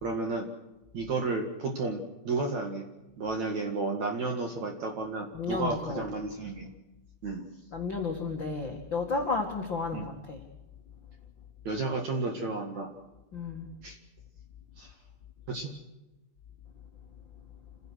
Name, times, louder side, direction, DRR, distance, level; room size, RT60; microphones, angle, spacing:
voice 1, 0.0-0.5 0.9-2.8 3.2-6.7 7.2-7.4 9.9-10.1 11.6-12.9 13.8-14.0 14.8-14.9 15.5-15.8, right 3 dB, 55° right, 3 dB, 2.2 m, -32 dB
voice 2, 5.3-6.0 7.7-10.4 13.3-13.7, left 4 dB, 90° left, 0 dB, 1.0 m, -32 dB
28.0 x 16.5 x 6.4 m, 1.0 s
omnidirectional pair, 5.9 m